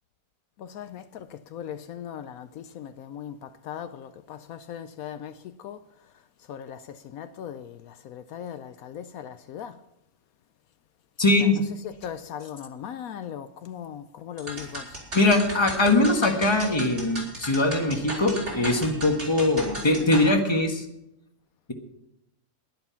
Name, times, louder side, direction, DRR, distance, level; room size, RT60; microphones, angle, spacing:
voice 1, 0.6-6.1 6.4-9.8 11.4-11.5 11.8-15.0, left 9 dB, 75° left, 1.0 m, -39 dB
voice 2, 11.2-11.6 15.1-20.8, left 2 dB, 20° left, 1.4 m, -22 dB
sound 1, 14.4-20.3, right 1 dB, 50° right, 4.7 m, -36 dB
11.5 x 11.0 x 5.8 m
omnidirectional pair, 1.5 m